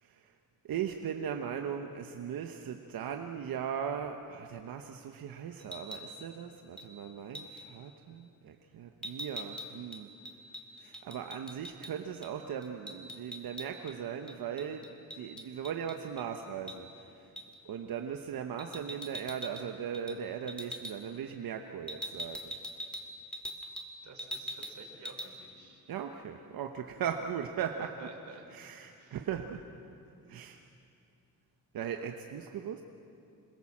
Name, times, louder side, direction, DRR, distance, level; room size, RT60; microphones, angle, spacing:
voice 1, 0.0-0.3 0.6-10.1 10.8-17.3 17.6-22.6 25.9-28.1 28.5-29.6 30.3-30.6 31.7-32.8, right 8 dB, 90° right, 4 dB, 1.2 m, -38 dB
sound 1, 5.6-6.1 6.8-6.9 7.3-7.6 9.0-11.9 12.2-12.3 12.6-13.9 14.3-16.3 16.7-16.8 17.4-17.6 18.6-19.7 19.9-20.2 20.5-21.0 21.9-23.9 24.2-24.8 25.1-25.3, equal, 5° left, 2.2 m, -42 dB
voice 2, 24.0-25.9 27.8-28.5 28.8-29.2, right 4 dB, 55° right, 2 dB, 4.1 m, -51 dB
26.5 x 22.5 x 7.4 m, 2.6 s
wide cardioid pair, 130°, 34 cm